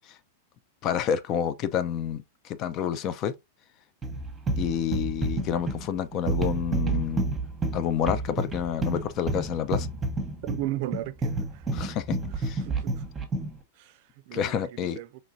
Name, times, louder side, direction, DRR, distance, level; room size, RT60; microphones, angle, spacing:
voice 1, 0.8-3.3 4.6-7.2 7.7-9.9 11.7-12.6 14.3-15.0, left 9 dB, 40° left, 0.4 m, -29 dB
sound 1, 4.0-13.6, right 3 dB, 15° right, 0.9 m, -30 dB
voice 2, 10.4-11.7 12.6-13.0 13.8-15.2, right 14 dB, 55° right, 0.4 m, -36 dB
3.8 x 3.1 x 2.6 m
hypercardioid pair, 105°, 0 cm